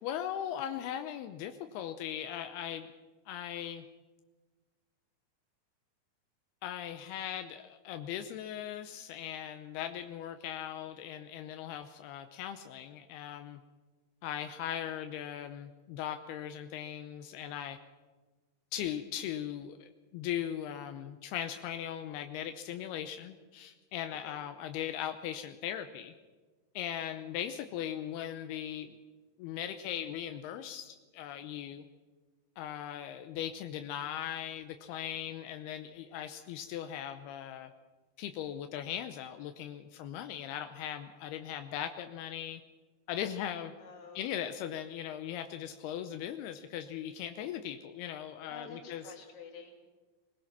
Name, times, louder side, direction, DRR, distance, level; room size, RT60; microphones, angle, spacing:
voice 1, 0.0-2.9 3.3-3.9 6.6-13.6 14.2-17.8 18.7-26.1 26.8-29.0 29.4-31.9 32.6-37.7 38.2-42.6 43.1-43.7 44.2-49.1, left 10 dB, 85° left, 8 dB, 2.8 m, -39 dB
voice 2, 43.8-44.2 48.5-49.8, left 5 dB, 50° left, 2 dB, 3.8 m, -49 dB
21.0 x 20.5 x 6.0 m, 1.3 s
omnidirectional pair, 4.5 m